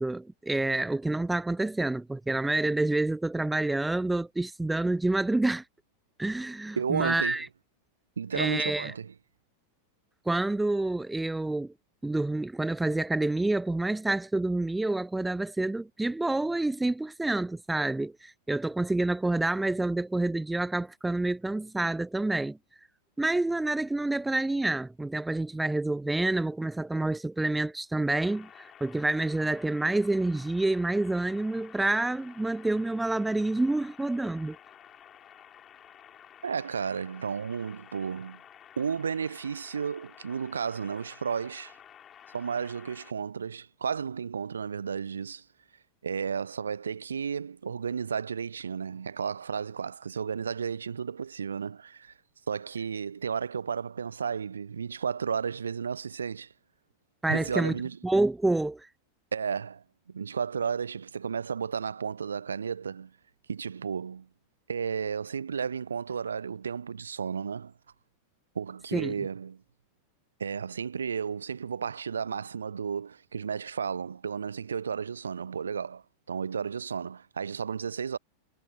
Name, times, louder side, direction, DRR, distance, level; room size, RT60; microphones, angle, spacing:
voice 1, 0.0-5.6 6.2-7.5 8.3-8.9 10.3-11.7 12.0-22.6 23.2-34.6 57.2-57.7 58.0-58.9 68.9-69.1, right 2 dB, 5° right, 0.3 m, -28 dB
voice 2, 6.8-7.4 8.2-9.1 36.4-38.4 38.8-41.7 42.3-45.4 46.0-52.1 52.5-56.5 57.3-58.0 59.3-63.1 63.5-64.3 64.7-67.7 68.5-69.6 70.4-78.2, right 6 dB, 70° right, 0.7 m, -33 dB
sound 1, 28.1-43.1, left 9 dB, 25° left, 7.2 m, -52 dB
figure-of-eight pair, 90°, 0 cm